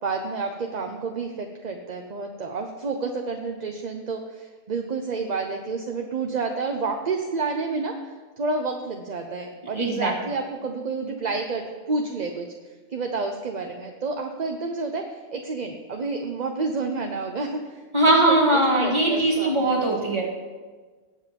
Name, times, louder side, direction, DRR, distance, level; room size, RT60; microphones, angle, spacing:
voice 1, 0.0-12.5 12.9-17.8 18.2-19.9, right 4 dB, 40° right, 4 dB, 0.8 m, -29 dB
voice 2, 9.8-10.1 17.9-20.2, right 2 dB, 25° right, -2 dB, 2.3 m, -20 dB
19.0 x 7.6 x 5.3 m, 1.4 s
omnidirectional pair, 1.3 m